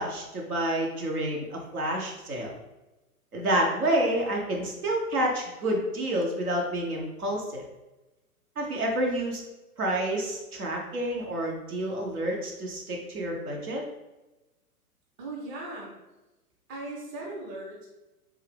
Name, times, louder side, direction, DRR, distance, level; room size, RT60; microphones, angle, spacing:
voice 1, 0.0-2.5 3.3-7.6 8.6-9.4 9.8-13.8, right 1 dB, 70° right, -1 dB, 1.1 m, -29 dB
voice 2, 15.2-15.9 16.7-17.9, right 2 dB, 25° right, -2 dB, 0.8 m, -38 dB
3.6 x 2.8 x 3.4 m, 1.0 s
figure-of-eight pair, 120°, 46 cm